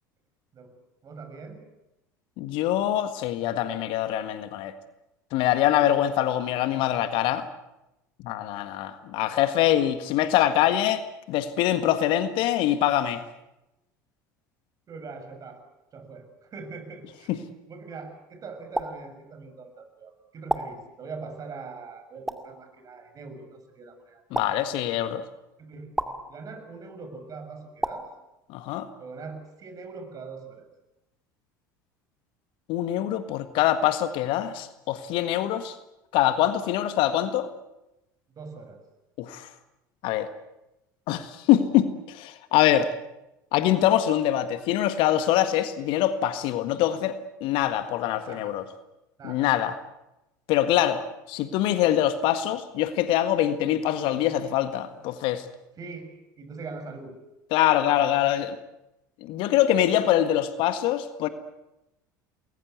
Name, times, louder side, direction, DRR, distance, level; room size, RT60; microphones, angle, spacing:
voice 1, 1.0-1.6 14.9-15.6 15.9-17.4 17.7-24.5 25.6-28.1 29.0-30.6 38.3-38.8 48.2-48.6 49.2-49.5 55.8-57.2, right 4 dB, 35° right, 7 dB, 6.9 m, -42 dB
voice 2, 2.4-4.7 5.3-7.5 8.2-13.2 17.3-17.4 24.3-25.2 28.5-28.9 32.7-35.7 36.1-37.5 39.2-39.5 40.0-40.3 41.1-42.9 43.5-48.6 49.2-49.7 50.5-55.4 57.5-58.6 59.2-61.3, left 12 dB, 50° left, 10 dB, 1.8 m, -24 dB
sound 1, 18.7-18.9 20.5-20.6 22.3-22.4 24.3-24.5 25.9-26.1 27.8-28.0, right 1 dB, 5° right, 2.4 m, -27 dB
28.5 x 21.5 x 8.2 m, 0.94 s
figure-of-eight pair, 70°, 11 cm